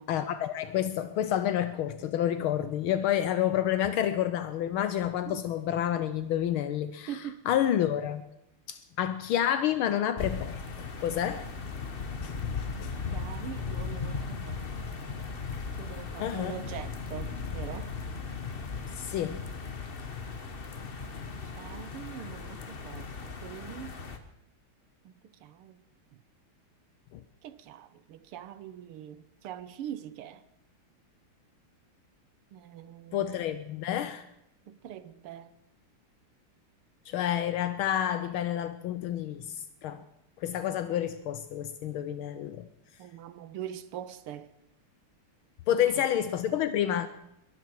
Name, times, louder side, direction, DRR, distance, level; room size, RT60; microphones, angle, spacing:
voice 1, 0.1-8.2 8.7-11.5 12.2-12.9 16.2-16.5 19.0-19.4 27.1-27.2 33.1-34.2 37.1-39.6 39.8-40.0 40.4-42.7 45.7-47.1, left 10 dB, 80° left, 1.5 m, -29 dB
voice 2, 7.1-7.4 13.1-15.0 15.8-17.9 20.2-20.4 21.6-24.0 25.1-25.8 27.4-30.4 32.5-33.4 34.7-35.5 43.0-44.5 45.9-46.0, right 10 dB, 90° right, 1.8 m, -43 dB
sound 1, 10.2-24.2, left 5 dB, 35° left, 1.0 m, -37 dB
22.5 x 13.0 x 4.7 m
omnidirectional pair, 2.4 m